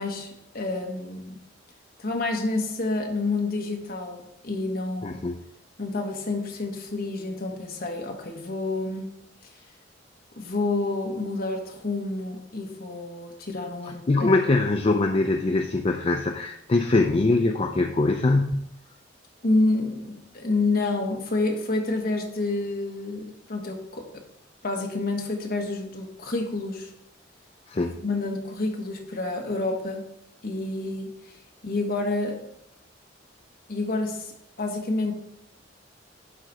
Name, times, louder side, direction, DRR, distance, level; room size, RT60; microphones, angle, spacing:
voice 1, 0.0-1.4 2.0-5.2 5.8-9.1 10.3-14.4 19.4-24.2 24.6-26.9 28.0-30.0 30.4-31.4 31.6-32.4 33.7-35.1, left 2 dB, 55° left, 2 dB, 1.4 m, -29 dB
voice 2, 5.0-5.4 14.1-18.7 27.7-28.0, left 2 dB, 30° left, 5 dB, 0.4 m, -23 dB
11.0 x 4.0 x 4.7 m, 0.78 s
head